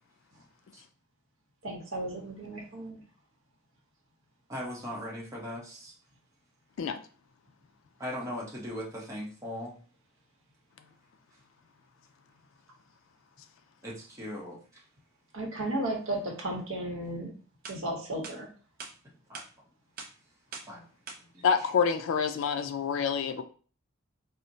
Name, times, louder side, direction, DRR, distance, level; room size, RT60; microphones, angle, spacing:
voice 1, 1.6-3.0 15.3-17.3 17.7-18.5, right 1 dB, 65° right, 0.9 m, -34 dB
voice 2, 4.5-5.9 8.0-9.8 13.8-14.6 19.3-19.4 20.7-20.8 21.3-21.5, equal, 15° right, 0.8 m, -38 dB
sound 1, 17.2-17.3 17.6-17.8 18.2-18.4 18.8-18.9 19.3-19.5 20.0-20.1 20.5-20.7 21.1-21.2, right 4 dB, 40° right, 0.5 m, -42 dB
voice 3, 21.4-23.4, left 6 dB, 65° left, 0.3 m, -27 dB
4.0 x 2.0 x 2.6 m
head